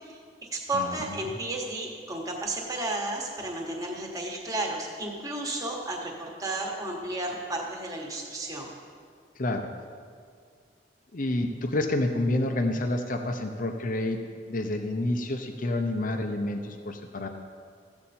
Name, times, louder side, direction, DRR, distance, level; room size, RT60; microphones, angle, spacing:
voice 1, 0.0-8.7, right 2 dB, 20° right, 0 dB, 1.4 m, -33 dB
voice 2, 0.7-1.2 9.4-9.7 11.1-14.2 14.5-17.3, left 1 dB, 45° left, 5 dB, 0.7 m, -29 dB
14.0 x 8.0 x 4.3 m, 2.1 s
head